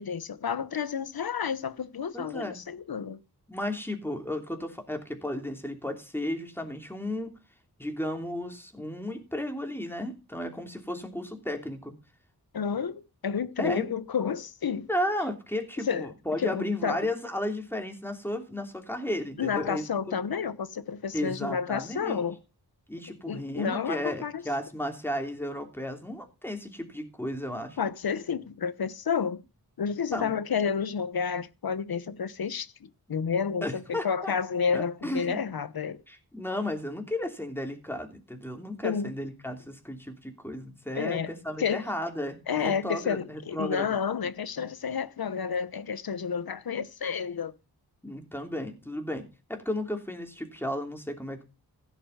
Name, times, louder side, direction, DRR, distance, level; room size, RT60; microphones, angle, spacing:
voice 1, 0.0-3.2 12.5-14.9 15.9-16.1 16.4-17.1 19.4-22.4 23.3-24.4 27.8-29.4 29.8-36.0 38.8-39.1 41.0-41.8 42.5-47.5, left 6 dB, 70° left, 1.0 m, -30 dB
voice 2, 2.1-2.6 3.5-7.3 7.8-11.9 13.6-13.9 14.9-19.8 21.1-22.2 22.9-27.8 30.1-30.4 33.6-34.3 34.7-35.4 36.1-43.9 48.0-49.2 49.5-51.4, left 1 dB, 5° left, 3.0 m, -34 dB
15.5 x 6.9 x 5.6 m
wide cardioid pair, 110°, 38 cm